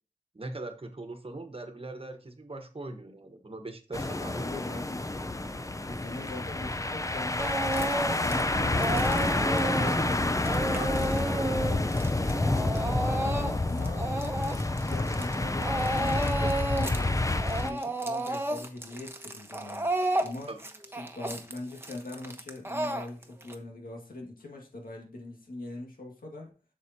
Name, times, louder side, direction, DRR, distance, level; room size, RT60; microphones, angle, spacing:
voice 1, 0.3-4.4 10.8-11.1 20.5-20.6, right 2 dB, 40° right, 6 dB, 1.3 m, -41 dB
sound 1, 3.9-17.7, left 2 dB, 20° left, 0.6 m, -29 dB
voice 2, 4.3-5.0 5.8-7.6 8.0-12.2 13.0-14.1 14.8-19.9 20.2-20.5 21.0-26.5, left 2 dB, 85° left, 1 dB, 2.0 m, -42 dB
Speech / Crying sobbing, 7.4-8.4 8.7-15.3 15.6-17.0 17.3-23.5, right 1 dB, 15° right, 1.1 m, -32 dB
7.8 x 6.5 x 2.8 m, 0.35 s
wide cardioid pair, 60°, 14 cm